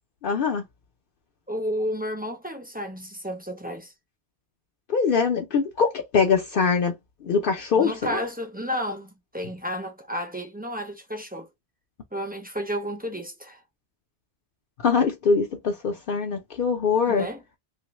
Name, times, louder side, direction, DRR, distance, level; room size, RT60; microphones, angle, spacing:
voice 1, 0.2-0.6 4.9-6.9 7.2-8.2 14.8-17.3, left 5 dB, 65° left, 0.8 m, -23 dB
voice 2, 1.5-3.9 7.8-11.5 12.1-13.6 17.1-17.4, equal, 10° right, 0.4 m, -32 dB
3.0 x 2.5 x 2.9 m
omnidirectional pair, 1.0 m